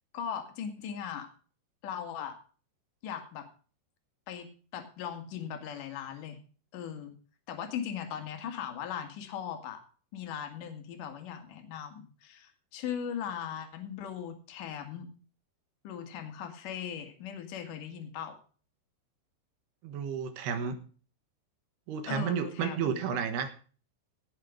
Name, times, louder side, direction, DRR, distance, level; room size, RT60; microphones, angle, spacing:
voice 1, 0.1-1.3 1.8-2.4 3.0-3.5 4.3-6.4 6.7-7.1 7.5-9.8 10.1-15.1 15.8-18.4 22.1-22.9, left 8 dB, 55° left, 6 dB, 3.2 m, -39 dB
voice 2, 19.8-20.8 21.9-23.5, right 7 dB, 70° right, 8 dB, 3.3 m, -32 dB
17.0 x 6.8 x 5.1 m, 0.39 s
omnidirectional pair, 5.1 m